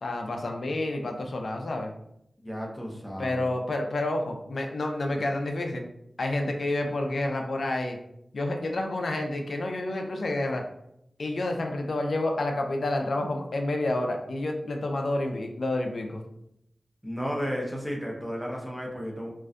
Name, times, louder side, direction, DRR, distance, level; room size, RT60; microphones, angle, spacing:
voice 1, 0.0-1.9 3.2-5.8 6.2-8.0 8.3-10.6 11.2-16.2, left 2 dB, 70° left, 3 dB, 0.3 m, -29 dB
voice 2, 2.4-3.5 17.0-19.3, equal, ahead, -2 dB, 0.6 m, -33 dB
2.5 x 2.1 x 2.4 m, 0.78 s
wide cardioid pair, 80°, 0 cm